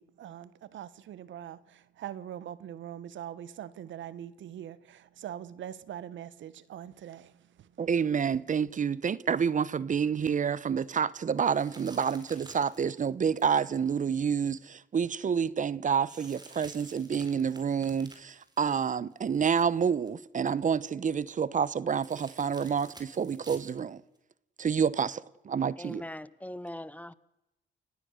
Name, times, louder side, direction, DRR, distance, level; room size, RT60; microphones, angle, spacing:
voice 1, 0.0-7.7, right 10 dB, 70° right, 1.2 m, -43 dB
voice 2, 7.8-24.0 24.6-26.0, right 7 dB, 40° right, 0.9 m, -28 dB
sound 1, 11.4-14.6 16.1-19.3 19.7-20.1 22.0-23.8 24.1-24.2 25.8-25.9, right 2 dB, 20° right, 4.7 m, -52 dB
voice 3, 25.8-27.1, left 1 dB, 10° left, 0.9 m, -41 dB
30.0 x 17.0 x 6.5 m
cardioid pair, 90°, 20 cm